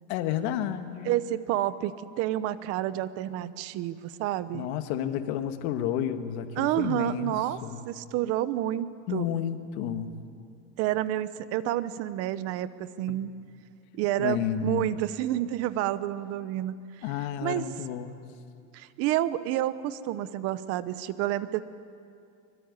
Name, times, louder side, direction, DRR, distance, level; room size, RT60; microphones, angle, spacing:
voice 1, 0.1-1.1 4.5-7.3 7.6-7.8 9.1-10.1 13.1-13.2 14.2-14.8 17.0-18.2, left 10 dB, 60° left, 8 dB, 1.8 m, -31 dB
voice 2, 1.0-4.7 6.6-7.6 7.9-9.3 10.8-13.4 13.9-17.0 17.4-17.7 18.7-21.6, right 13 dB, 40° right, 15 dB, 0.9 m, -29 dB
24.5 x 22.5 x 9.8 m, 2.4 s
cardioid pair, 175°, 36 cm